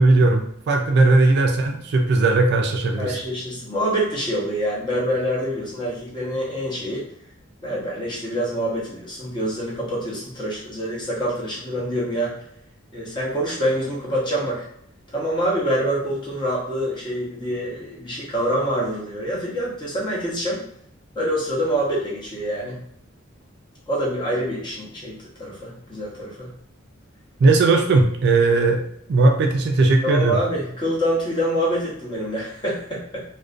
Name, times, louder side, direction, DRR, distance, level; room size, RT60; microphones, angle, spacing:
voice 1, 0.0-3.2 27.4-28.8 29.1-30.4, right 3 dB, 55° right, 3 dB, 0.3 m, -17 dB
voice 2, 3.0-7.1 7.6-12.3 12.9-14.7 15.1-20.6 21.1-22.8 23.9-26.5 30.0-33.2, equal, 25° left, -5 dB, 0.8 m, -26 dB
2.4 x 2.1 x 2.4 m, 0.68 s
head